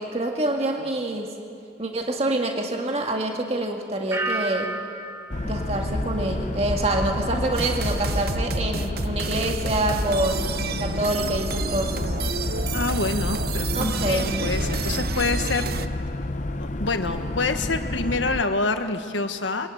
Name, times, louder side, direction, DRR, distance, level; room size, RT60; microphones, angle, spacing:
voice 1, 0.0-1.4 1.8-4.7 5.4-10.4 10.8-12.1 13.7-14.4, right 1 dB, 35° right, 2 dB, 1.9 m, -26 dB
sound 1, 4.1-6.9 7.3-7.8, right 2 dB, 15° right, 1.2 m, -34 dB
sound 2, 5.3-18.4, left 2 dB, 40° left, 0.8 m, -29 dB
sound 3, 7.5-15.9, right 4 dB, 55° right, 0.8 m, -30 dB
voice 2, 12.7-15.7 16.6-19.7, left 3 dB, 80° left, 7 dB, 1.5 m, -27 dB
23.5 x 21.0 x 9.4 m, 2.4 s
head